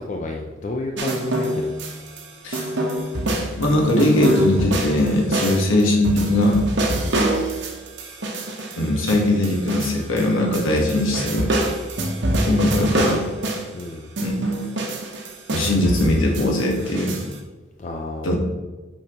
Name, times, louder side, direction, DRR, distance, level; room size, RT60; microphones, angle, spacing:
voice 1, 0.0-1.8 5.4-5.6 7.0-7.2 13.7-14.1 17.8-18.4, left 2 dB, 40° left, 2 dB, 0.4 m, -31 dB
sound 1, 1.0-2.2 2.5-10.3 10.5-13.8 14.2-17.3, right 1 dB, 60° right, 0.9 m, -25 dB
voice 2, 3.6-6.6 8.8-11.5 12.4-13.2 14.2-14.3 15.5-17.2 18.2-18.4, left 1 dB, 90° left, 0 dB, 1.4 m, -20 dB
8.5 x 4.4 x 3.0 m, 1.2 s
head